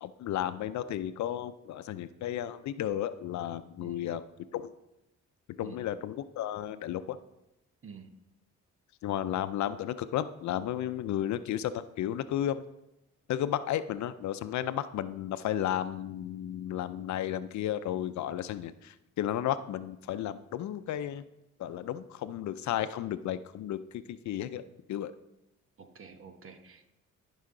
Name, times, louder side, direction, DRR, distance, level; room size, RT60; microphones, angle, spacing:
voice 1, 0.0-4.2 4.5-4.7 5.6-7.2 9.0-12.6 13.3-21.2 21.6-24.6 24.9-25.1, left 11 dB, 70° left, 13 dB, 0.6 m, -33 dB
voice 2, 7.8-8.1 25.8-26.9, right 6 dB, 45° right, 7 dB, 1.2 m, -49 dB
13.0 x 5.6 x 3.8 m, 0.90 s
cardioid pair, 90°, 30 cm